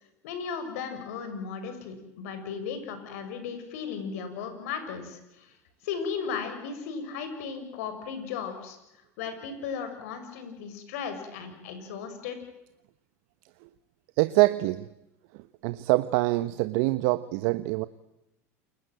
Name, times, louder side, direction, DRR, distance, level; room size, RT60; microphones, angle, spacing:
voice 1, 0.2-5.5 5.8-8.8 9.2-12.4, left 6 dB, 70° left, 8 dB, 7.0 m, -36 dB
voice 2, 14.2-14.9 15.3-17.9, right 20 dB, 65° right, 14 dB, 1.1 m, -25 dB
29.0 x 23.0 x 7.8 m, 0.93 s
hypercardioid pair, 90°, 8 cm